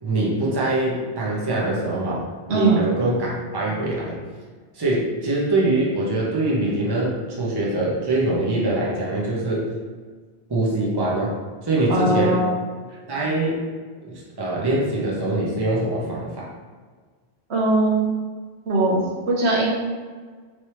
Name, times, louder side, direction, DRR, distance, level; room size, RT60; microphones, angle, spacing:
voice 1, 0.0-4.2 4.7-9.7 10.5-11.4 11.6-12.4 13.1-13.6 14.0-16.5, right 2 dB, 25° right, -5 dB, 0.9 m, -23 dB
voice 2, 2.5-2.8 11.9-12.5 17.5-18.1 18.7-19.7, right 2 dB, 75° right, -3 dB, 1.1 m, -20 dB
4.4 x 3.3 x 3.1 m, 1.5 s
omnidirectional pair, 1.1 m